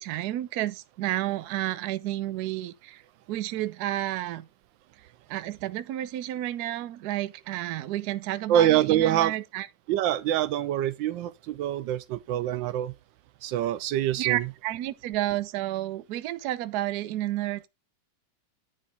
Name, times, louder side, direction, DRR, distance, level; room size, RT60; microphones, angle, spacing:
voice 1, 0.0-3.0 3.3-4.5 5.3-9.7 14.2-17.7, right 14 dB, 70° right, 1.1 m, -31 dB
voice 2, 8.5-9.4 9.9-12.9 13.4-14.5, right 11 dB, 85° right, 1.3 m, -25 dB
9.9 x 3.6 x 5.5 m
omnidirectional pair, 2.0 m